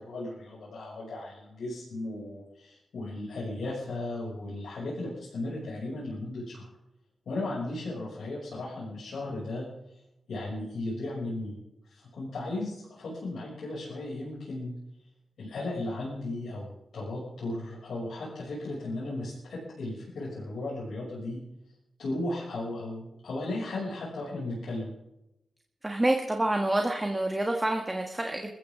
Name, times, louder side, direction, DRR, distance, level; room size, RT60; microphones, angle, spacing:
voice 1, 0.0-6.7 7.3-9.7 10.3-11.6 11.9-14.7 15.4-16.7 16.9-21.4 22.0-24.9, left 2 dB, 80° left, -7 dB, 6.5 m, -35 dB
voice 2, 25.8-28.5, right 1 dB, 15° right, 3 dB, 1.5 m, -27 dB
22.5 x 14.5 x 3.7 m, 0.88 s
wide cardioid pair, 105°, 0 cm